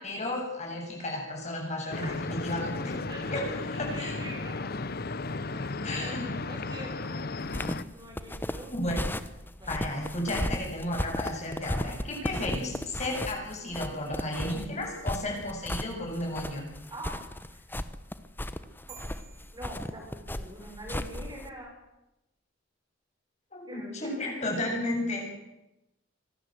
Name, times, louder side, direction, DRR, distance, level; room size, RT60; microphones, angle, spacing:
voice 1, 0.0-3.0 3.3-4.2 5.8-6.3 8.7-9.0 9.7-16.7 23.5-25.3, left 1 dB, 35° left, 0 dB, 7.8 m, -33 dB
sound 1, 1.9-7.8, left 3 dB, 55° left, 1.0 m, -34 dB
voice 2, 3.1-3.5 3.7-4.9 5.2-7.3 7.9-8.7 9.6-9.7 16.9-17.6 18.8-19.0 19.5-21.7 23.7-24.3, right 1 dB, 20° right, 1 dB, 6.6 m, -44 dB
sound 2, 7.4-21.5, left 1 dB, 10° left, 1.1 m, -35 dB
sound 3, 18.9-20.6, right 9 dB, 55° right, 7.1 m, -53 dB
25.5 x 19.0 x 8.0 m, 0.94 s
head